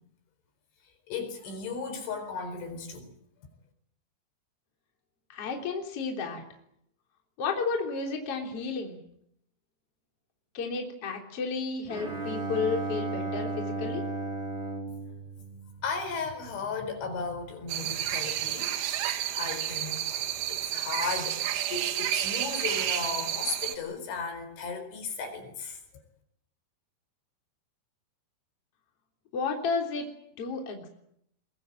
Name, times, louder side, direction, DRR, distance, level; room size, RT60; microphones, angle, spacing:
voice 1, 1.1-3.1 15.8-18.8 19.3-21.4 21.7-25.8, left 5 dB, 70° left, 6.6 m, -35 dB
voice 2, 5.3-6.4 7.4-9.0 10.5-14.1 29.3-30.1 30.4-30.9, left 4 dB, 35° left, 3.8 m, -32 dB
Bowed string instrument, 11.9-16.2, right 3 dB, 20° right, 2.3 m, -35 dB
sound 1, 17.7-23.8, right 12 dB, 70° right, 3.4 m, -31 dB
22.5 x 22.0 x 9.2 m
omnidirectional pair, 5.6 m